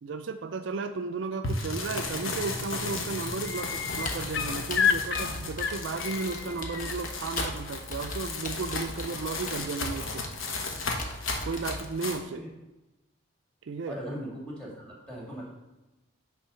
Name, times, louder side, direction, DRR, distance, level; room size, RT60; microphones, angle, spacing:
voice 1, 0.0-10.2 11.5-12.4 13.7-14.0, right 4 dB, 65° right, 7 dB, 0.4 m, -34 dB
sound 1, 1.4-12.2, left 3 dB, 85° left, 1.2 m, -35 dB
sound 2, 2.3-2.6 2.9-7.0 8.6-8.7, left 7 dB, 60° left, 0.5 m, -31 dB
Computer keyboard, 3.9-11.8, left 1 dB, 40° left, 1.0 m, -39 dB
voice 2, 13.9-15.5, equal, 5° left, -5 dB, 2.3 m, -39 dB
8.6 x 3.9 x 5.6 m, 1.0 s
head